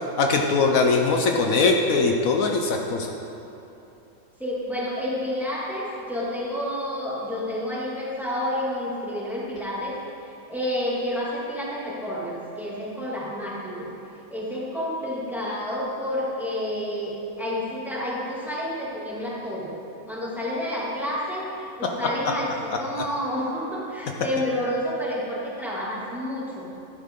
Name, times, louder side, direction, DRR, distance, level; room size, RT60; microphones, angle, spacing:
voice 1, 0.2-3.1, left 4 dB, 70° left, 2 dB, 1.2 m, -21 dB
voice 2, 4.4-13.9 14.3-19.7 20.1-26.7, equal, ahead, -7 dB, 2.4 m, -29 dB
13.5 x 11.0 x 3.7 m, 2.9 s
omnidirectional pair, 1.5 m